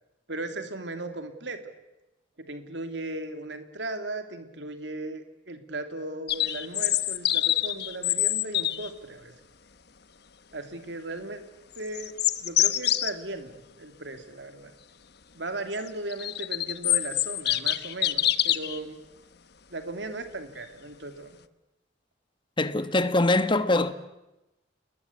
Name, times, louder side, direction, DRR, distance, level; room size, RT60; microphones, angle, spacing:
voice 1, 0.3-1.7 2.4-9.3 10.5-11.4 11.8-12.1 12.4-14.7 15.3-19.0 19.7-21.4, right 2 dB, 65° right, 2.7 m, -37 dB
sound 1, 6.3-8.9 11.7-13.1 15.9-18.8, left 13 dB, 60° left, 1.1 m, -25 dB
voice 2, 22.6-23.9, left 2 dB, 25° left, 1.4 m, -23 dB
29.0 x 21.0 x 8.4 m
head